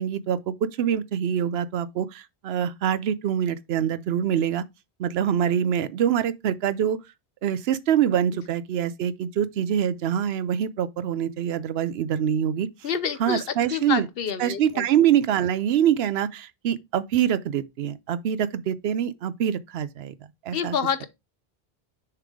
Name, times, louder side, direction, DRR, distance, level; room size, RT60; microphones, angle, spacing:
voice 1, 0.0-4.6 5.0-7.0 7.4-12.9 13.2-14.1 14.4-20.1 20.4-20.8, right 9 dB, 80° right, 0.8 m, -25 dB
voice 2, 12.8-13.4 13.7-14.8 20.5-21.1, left 7 dB, 70° left, 1.0 m, -27 dB
6.7 x 3.5 x 4.9 m
omnidirectional pair, 1.0 m